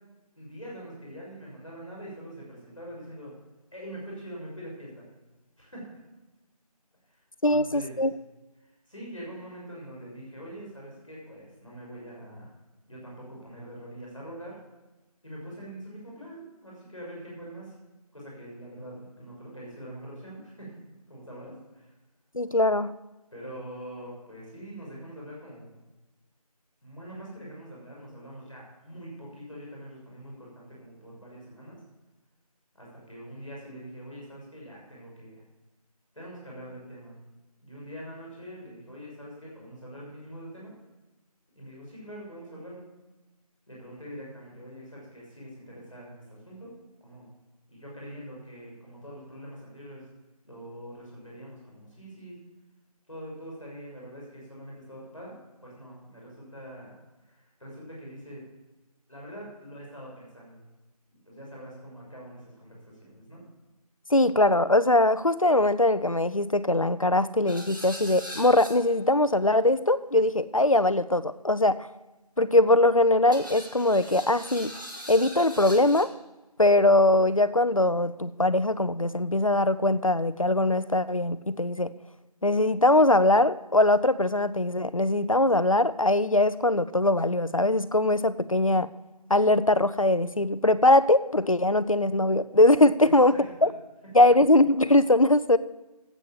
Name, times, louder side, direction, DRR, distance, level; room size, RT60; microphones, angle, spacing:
voice 1, 0.3-3.3 3.7-5.1 5.6-6.0 7.1-7.2 7.5-8.0 8.6-12.5 12.8-14.6 15.2-17.7 18.1-20.8 21.1-21.9 23.3-25.8 26.8-31.8 32.7-35.4 36.1-37.2 37.6-40.7 41.5-42.9 43.7-47.3 47.7-50.0 50.4-52.4 53.1-58.4 59.1-60.6 61.2-63.4 93.0-93.7 94.2-94.3, equal, ahead, -29 dB, 4.5 m, -44 dB
voice 2, 7.4-8.1 22.3-22.9 64.1-71.8 72.4-74.8 75.1-76.1 76.6-81.9 82.4-88.9 89.3-93.3 93.6-93.7 94.1-95.6, left 2 dB, 55° left, 14 dB, 0.7 m, -21 dB
sound 1, 67.5-69.1 73.3-76.1, equal, 30° right, 1.8 m, -41 dB
12.5 x 8.5 x 7.4 m, 1.1 s
figure-of-eight pair, 180°, 20 cm